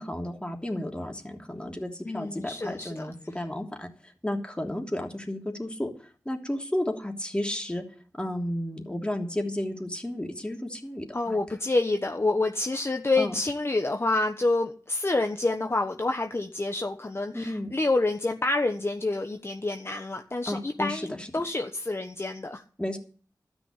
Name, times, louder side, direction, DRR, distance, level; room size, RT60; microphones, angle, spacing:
voice 1, 0.0-7.9 8.2-11.4 13.2-13.4 17.3-17.7 20.5-21.3 22.8-23.0, left 1 dB, 15° left, 2 dB, 3.1 m, -33 dB
voice 2, 2.0-3.1 11.1-22.6, left 2 dB, 35° left, 5 dB, 1.2 m, -28 dB
13.0 x 6.2 x 9.8 m, 0.43 s
cardioid pair, 50°, 7 cm